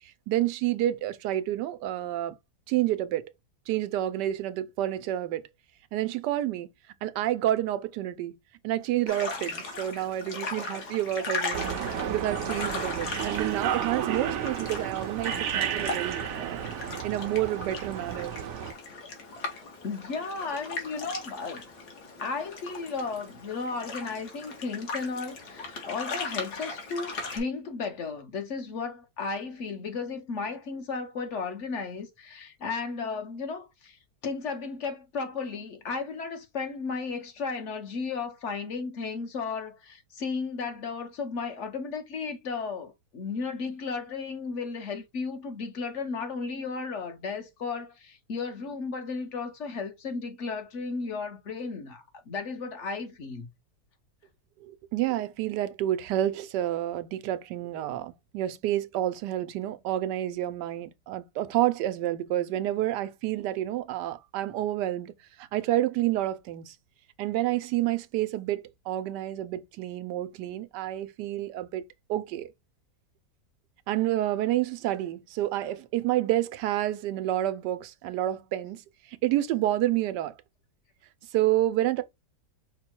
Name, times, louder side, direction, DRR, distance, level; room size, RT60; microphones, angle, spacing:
voice 1, 0.0-2.3 2.7-3.3 3.7-5.5 5.9-6.7 7.0-8.4 8.6-11.7 12.1-16.7 17.0-18.3 54.6-65.1 65.4-66.7 67.2-68.6 68.9-72.5 73.9-78.8 79.1-80.3 81.3-82.0, right 13 dB, 90° right, 1.2 m, -29 dB
sound 1, 9.1-27.4, left 3 dB, 70° left, 1.8 m, -38 dB
sound 2, 11.5-18.7, right 9 dB, 65° right, 0.7 m, -32 dB
voice 2, 19.8-21.6 22.2-53.5, left 4 dB, 50° left, 1.0 m, -34 dB
5.5 x 2.1 x 4.3 m
omnidirectional pair, 1.8 m